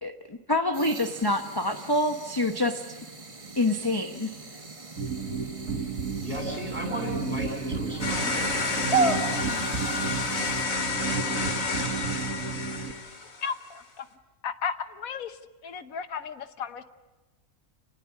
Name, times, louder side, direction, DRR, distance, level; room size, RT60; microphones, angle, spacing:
voice 1, 0.0-2.8 3.6-4.3, left 2 dB, 20° left, 5 dB, 0.9 m, -26 dB
sound 1, 0.7-10.6, right 3 dB, 25° right, 1.3 m, -35 dB
sound 2, 5.0-12.9, right 5 dB, 80° right, 2.0 m, -33 dB
voice 2, 6.2-9.7, equal, 45° right, 1 dB, 8.2 m, -34 dB
sound 3, 8.0-13.5, left 4 dB, 75° left, 2.5 m, -30 dB
voice 3, 13.4-14.1 14.4-15.4 15.6-16.8, left 6 dB, 90° left, 10 dB, 1.5 m, -34 dB
28.0 x 19.5 x 8.5 m, 1.2 s
omnidirectional pair, 1.4 m